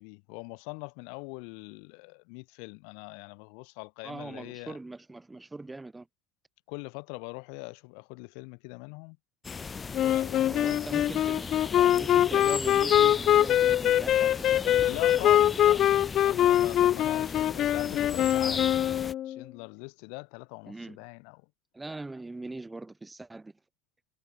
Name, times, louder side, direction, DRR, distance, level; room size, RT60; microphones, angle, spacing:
voice 1, 0.0-4.8 6.7-9.2 9.9-11.0 14.8-15.8 16.2-18.6 19.2-21.4, left 40 dB or more, 70° left, 3.3 m, -42 dB
voice 2, 4.0-6.1 10.5-14.9 15.2-15.5 20.7-21.0 21.7-23.5, right 2 dB, 15° right, 5.2 m, -41 dB
sound 1, 9.4-19.1, left 5 dB, 25° left, 1.6 m, -37 dB
Wind instrument woodwind instrument, 9.9-19.4, left 12 dB, 50° left, 1.0 m, -23 dB
hypercardioid pair, 75°, 0 cm